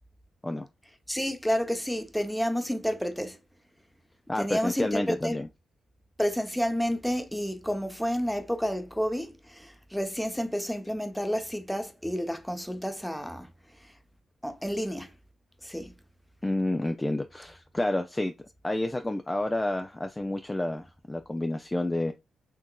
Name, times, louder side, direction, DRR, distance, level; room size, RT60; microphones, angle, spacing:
voice 1, 1.1-3.4 4.4-5.4 6.2-13.5 13.8-13.9 14.4-15.1 15.6-15.9, equal, 5° left, 0.8 m, -30 dB
voice 2, 4.3-5.5 16.4-18.3 18.6-22.1, left 1 dB, 20° left, 0.5 m, -29 dB
4.4 x 2.9 x 2.2 m
hypercardioid pair, 45°, 0 cm